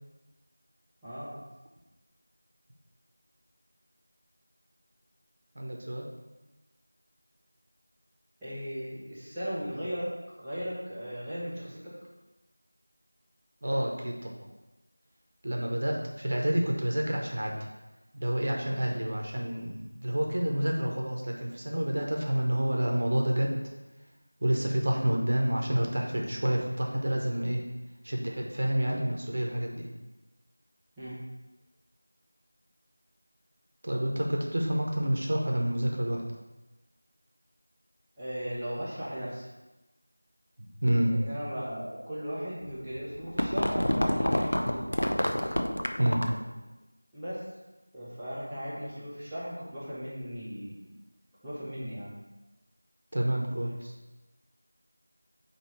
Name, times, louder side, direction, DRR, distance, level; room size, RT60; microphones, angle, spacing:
voice 1, 1.0-1.4 8.4-10.1 10.4-11.9 28.8-29.1 31.0-31.2 38.2-39.5 41.1-44.9 47.1-47.4 47.9-50.7 51.4-52.1, equal, ahead, -20 dB, 0.6 m, -37 dB
voice 2, 5.5-6.1 13.6-14.3 15.4-17.6 18.1-23.6 24.4-27.6 28.0-29.9 33.8-36.2 40.6-41.1 46.0-46.2 53.1-53.9, right 1 dB, 35° right, 0 dB, 0.9 m, -29 dB
sound 1, 42.7-46.5, left 1 dB, 80° left, 0.6 m, -28 dB
8.7 x 3.0 x 4.4 m, 1.1 s
figure-of-eight pair, 180°, 0 cm